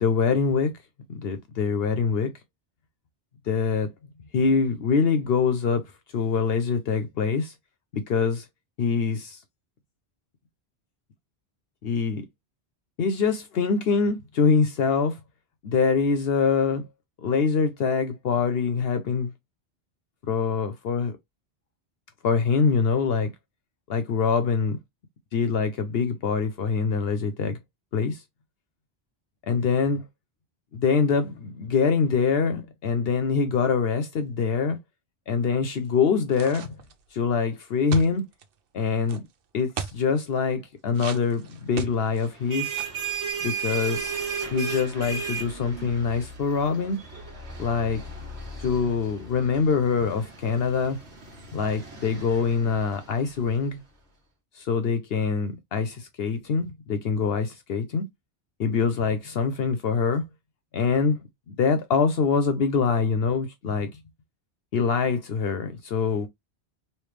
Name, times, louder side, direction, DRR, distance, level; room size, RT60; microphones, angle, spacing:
voice 1, 0.0-0.7 1.1-2.3 3.5-3.9 4.3-5.8 6.1-7.5 7.9-8.4 8.8-9.4 11.8-12.2 13.0-15.2 15.6-16.8 17.2-19.3 20.3-21.1 22.2-23.3 23.9-24.8 25.3-27.6 27.9-28.2 29.5-30.0 30.7-34.8 35.3-36.8 37.1-38.2 38.7-39.2 39.5-42.8 43.4-44.2 44.5-47.0 47.6-48.0 48.6-51.0 51.5-53.8 54.6-58.1 58.6-60.2 60.7-61.2 61.5-63.9 64.7-66.3, left 5 dB, 70° left, 0.8 m, -24 dB
sound 1, 36.3-37.0 37.9-38.4 39.1-39.2 39.8-40.0 40.9-42.3 42.6-43.0, right 7 dB, 65° right, 0.8 m, -35 dB
sound 2, 42.2-53.6, right 6 dB, 80° right, 1.6 m, -35 dB
3.2 x 2.9 x 3.2 m
omnidirectional pair, 1.1 m